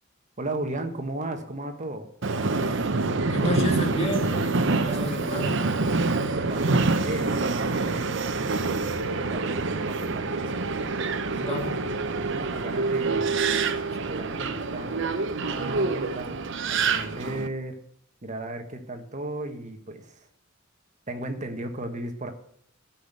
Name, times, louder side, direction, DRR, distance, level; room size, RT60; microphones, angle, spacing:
voice 1, 0.4-2.1 6.3-6.7 7.0-8.6 9.0-10.3 12.2-13.4 14.0-14.9 15.5-16.4 16.7-17.8 18.2-20.3 21.1-22.3, right 2 dB, 40° right, 6 dB, 1.5 m, -35 dB
Subway metro underground, 2.2-17.5, right 3 dB, 65° right, 0.8 m, -26 dB
voice 2, 3.3-5.6 11.3-11.8, equal, 30° left, 2 dB, 2.3 m, -30 dB
13.0 x 5.9 x 8.0 m, 0.71 s
head